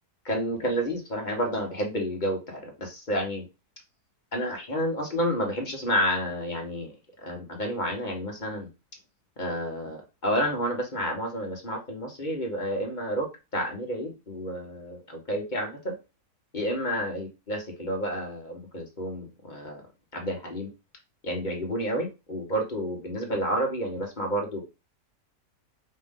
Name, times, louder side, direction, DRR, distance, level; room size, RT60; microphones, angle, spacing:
voice 1, 0.2-3.4 4.3-6.9 7.2-8.7 9.4-13.3 13.5-15.9 16.5-19.8 20.1-20.7 21.2-24.6, equal, 30° left, 1 dB, 1.1 m, -30 dB
5.3 x 2.6 x 3.7 m, 0.27 s
omnidirectional pair, 1.7 m